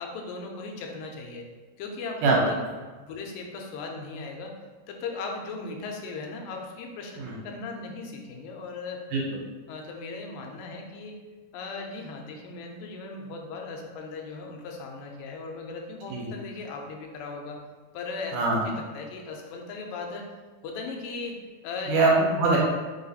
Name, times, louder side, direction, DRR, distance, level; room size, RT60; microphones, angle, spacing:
voice 1, 0.0-1.5 1.8-2.6 3.0-4.6 4.9-9.0 9.7-11.2 11.5-17.6 17.9-20.3 20.6-21.4 21.6-21.9, left 3 dB, 90° left, 1 dB, 2.4 m, -37 dB
voice 2, 18.3-18.6 21.9-22.6, right 3 dB, 75° right, -3 dB, 2.3 m, -22 dB
5.2 x 2.4 x 4.0 m, 1.4 s
omnidirectional pair, 3.9 m